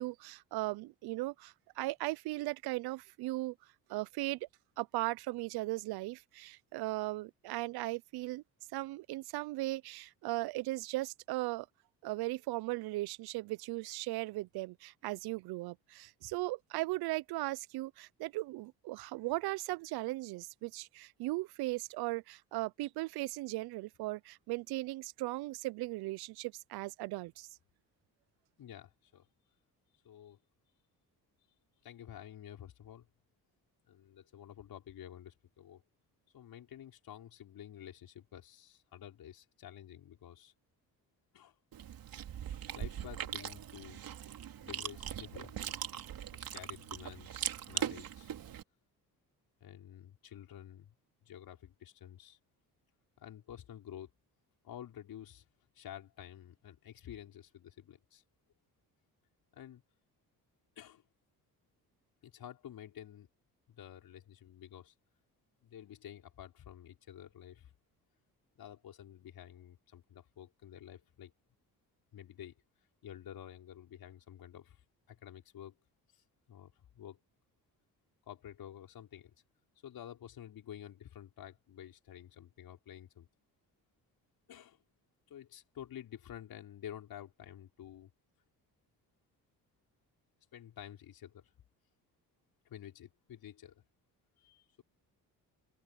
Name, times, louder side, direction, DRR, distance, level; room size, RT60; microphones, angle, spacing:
voice 1, 0.0-3.6 3.9-4.4 4.8-8.4 8.7-11.7 12.0-27.5, right 20 dB, 85° right, 0.6 m, -37 dB
voice 2, 28.6-29.3 30.0-30.4 31.8-33.1 33.9-35.8 36.3-40.5 41.3-41.5 42.5-44.0 44.6-45.7 46.3-48.3 49.6-50.9 51.2-52.4 53.2-54.1 54.6-55.4 55.8-58.2 59.5-59.8 60.8-61.1 62.2-63.3 63.7-64.9 65.6-67.7 68.6-71.3 72.1-72.6 73.0-74.8 75.1-75.7 76.1-77.2 78.3-79.3 79.8-83.3 84.5-84.8 85.3-88.1 90.5-91.5 92.7-93.8 94.4-94.8, left 10 dB, 70° left, 5.7 m, -50 dB
Chewing mastication, 41.7-48.6, right 10 dB, 65° right, 3.1 m, -40 dB
cardioid pair, 80°, 37 cm